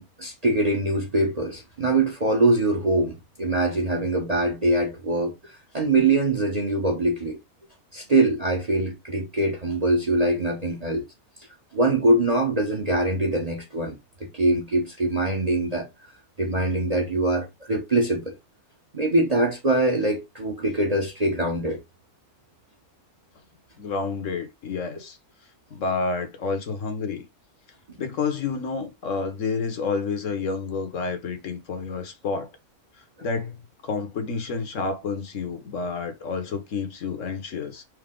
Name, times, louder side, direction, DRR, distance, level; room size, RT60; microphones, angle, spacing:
voice 1, 0.0-5.3 5.7-7.4 7.9-11.0 11.7-14.0 14.3-15.9 16.4-18.3 18.9-21.8, right 2 dB, 30° right, 1.0 m, -23 dB
voice 2, 23.8-25.2 25.7-27.2 28.0-32.5 33.0-37.8, left 4 dB, 55° left, 1.3 m, -29 dB
4.8 x 2.9 x 3.6 m
omnidirectional pair, 1.6 m